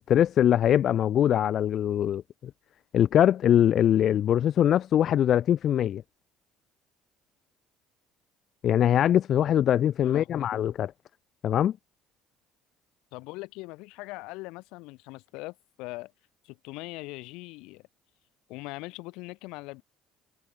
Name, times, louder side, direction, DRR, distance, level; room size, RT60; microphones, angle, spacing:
voice 1, 0.0-2.2 2.9-6.0 8.6-10.9 11.4-11.7, left 10 dB, 55° left, 0.6 m, -22 dB
voice 2, 10.0-10.5 13.1-16.1 16.4-17.9 18.5-19.8, left 23 dB, 75° left, 5.3 m, -41 dB
supercardioid pair, 75°, 0 cm